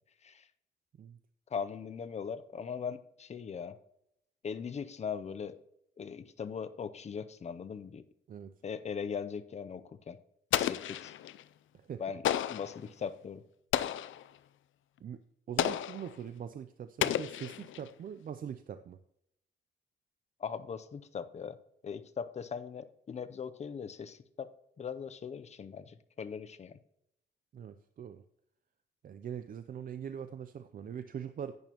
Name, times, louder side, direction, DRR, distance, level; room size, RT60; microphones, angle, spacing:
voice 1, 1.5-3.8 4.4-5.6 6.0-8.0 8.6-10.2 10.6-11.1 12.0-12.2 12.5-13.4 20.4-21.6 21.8-24.5 24.8-26.8, left 6 dB, 35° left, 11 dB, 0.5 m, -40 dB
Explosion, 10.5-11.4 12.2-12.8 13.7-14.3 15.6-16.1 17.0-17.9, left 12 dB, 85° left, 0.4 m, -32 dB
voice 2, 15.0-19.0 27.5-28.2 29.0-31.6, right 8 dB, 45° right, 10 dB, 0.4 m, -42 dB
10.5 x 8.9 x 2.9 m, 0.77 s
wide cardioid pair, 140°, 20 cm